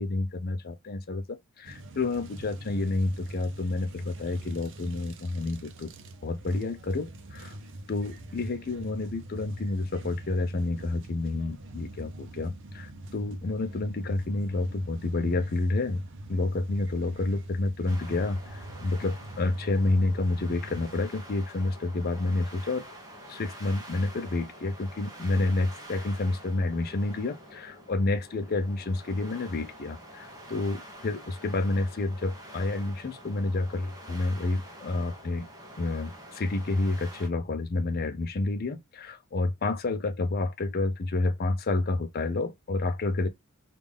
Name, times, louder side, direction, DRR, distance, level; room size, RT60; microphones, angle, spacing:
voice 1, 0.0-5.9 6.2-7.5 7.9-16.0 16.3-22.8 23.3-35.5 35.8-43.3, left 2 dB, 45° left, 0.5 m, -29 dB
sound 1, 1.6-21.1, right 1 dB, 60° right, 0.6 m, -44 dB
sound 2, 17.9-37.3, right 1 dB, 15° right, 0.9 m, -47 dB
3.5 x 2.4 x 3.3 m
head